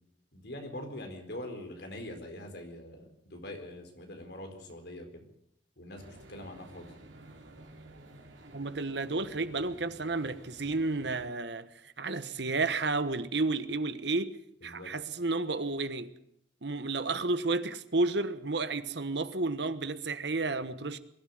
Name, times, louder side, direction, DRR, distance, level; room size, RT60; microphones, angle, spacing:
voice 1, 0.3-5.3 5.8-6.9 14.6-14.9, left 1 dB, 60° left, 4.4 m, -43 dB
sound 1, 6.0-11.3, right 2 dB, 85° right, 3.3 m, -52 dB
voice 2, 8.5-14.4 14.6-16.1 16.6-21.0, right 3 dB, 65° right, 1.3 m, -31 dB
22.0 x 12.5 x 9.6 m
head